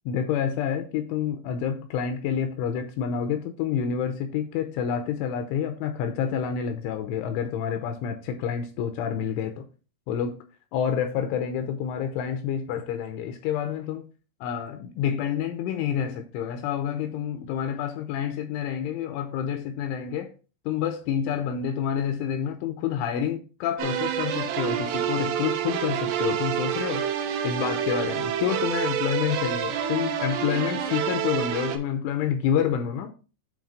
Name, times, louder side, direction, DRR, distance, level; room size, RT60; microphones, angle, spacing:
voice 1, 0.1-9.7 10.1-10.4 10.7-14.0 14.4-20.3 20.7-27.0 27.4-33.1, left 8 dB, 85° left, 2.9 m, -28 dB
sound 1, 23.8-31.8, right 9 dB, 85° right, 2.3 m, -28 dB
8.6 x 3.2 x 5.1 m
omnidirectional pair, 5.9 m